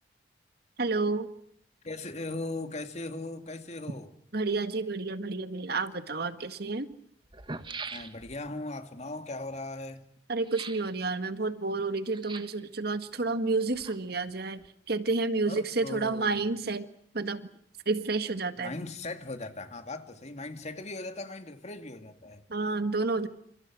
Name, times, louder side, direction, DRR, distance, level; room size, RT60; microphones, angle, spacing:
voice 1, 0.8-1.3 4.3-6.9 10.3-16.9 17.1-17.5 17.9-18.7 22.5-23.3, right 3 dB, 60° right, 1.8 m, -30 dB
voice 2, 1.8-4.1 7.9-10.0 15.5-16.4 18.6-22.4, left 2 dB, 40° left, 2.4 m, -38 dB
sound 1, 6.9-7.0 7.2-8.5 10.4-10.9 12.1-12.7 13.5-14.3 14.6-14.7, right 4 dB, 30° right, 1.5 m, -42 dB
29.0 x 27.5 x 6.2 m
head